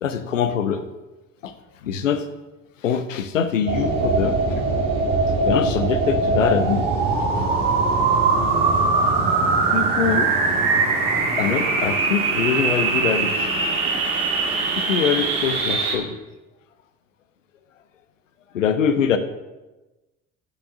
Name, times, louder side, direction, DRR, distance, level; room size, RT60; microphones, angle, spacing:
voice 1, 0.0-0.9 1.4-1.5 1.8-2.3 2.8-4.6 5.4-6.9 9.7-10.3 11.4-13.5 14.8-16.2 18.5-19.2, left 7 dB, 90° left, 10 dB, 0.6 m, -23 dB
sound 1, 3.7-16.0, right 3 dB, 60° right, 1.8 m, -21 dB
6.2 x 6.0 x 6.2 m, 1.1 s
figure-of-eight pair, 50°, 37 cm